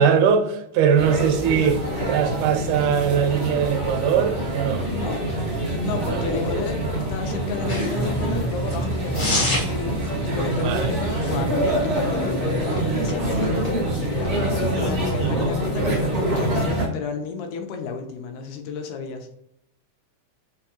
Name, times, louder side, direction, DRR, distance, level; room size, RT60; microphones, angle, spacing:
voice 1, 0.0-1.8 2.1-4.9 6.1-6.2 10.6-10.9, right 7 dB, 85° right, 2.0 m, -21 dB
sound 1, 1.0-16.9, right 1 dB, 65° right, 0.6 m, -25 dB
voice 2, 4.9-5.3 5.8-19.3, left 5 dB, 80° left, 2.0 m, -33 dB
sound 2, 7.7-15.5, left 1 dB, 45° left, 0.9 m, -33 dB
5.0 x 2.2 x 2.8 m
omnidirectional pair, 3.4 m